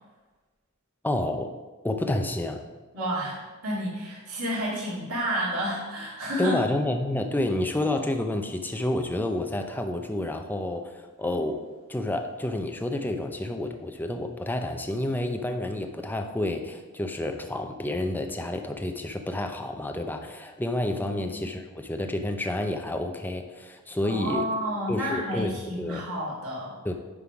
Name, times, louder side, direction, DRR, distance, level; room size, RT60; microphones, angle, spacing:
voice 1, 1.0-1.5 1.8-2.6 6.4-24.5 24.9-26.0 26.8-26.9, left 1 dB, 10° left, 5 dB, 0.5 m, -29 dB
voice 2, 2.9-6.6 21.1-21.3 24.0-26.7, equal, 75° right, -6 dB, 2.3 m, -30 dB
9.7 x 3.7 x 4.8 m, 1.3 s
head